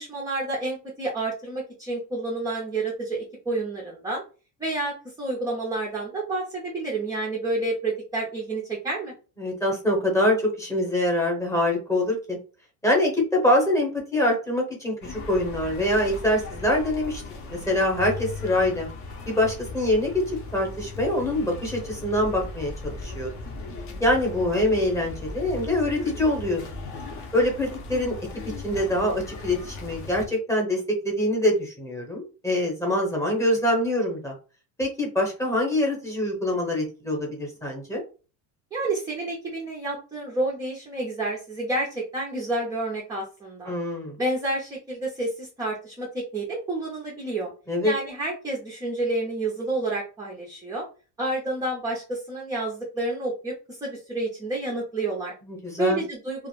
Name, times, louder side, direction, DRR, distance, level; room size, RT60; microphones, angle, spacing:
voice 1, 0.0-4.2 4.6-9.1 38.7-43.7 44.2-47.5 47.8-50.8 51.2-55.3 55.8-56.5, right 2 dB, 10° right, -4 dB, 0.3 m, -29 dB
voice 2, 9.4-12.4 12.8-17.2 17.5-18.9 19.3-20.2 20.5-23.3 24.0-26.6 27.3-28.2 28.6-34.3 34.8-38.0 43.7-44.2 47.7-47.9 55.5-56.0, left 1 dB, 5° left, -1 dB, 0.7 m, -24 dB
sound 1, 15.0-30.3, left 3 dB, 40° left, 0.6 m, -37 dB
2.4 x 2.0 x 3.0 m, 0.35 s
cardioid pair, 140°, 46 cm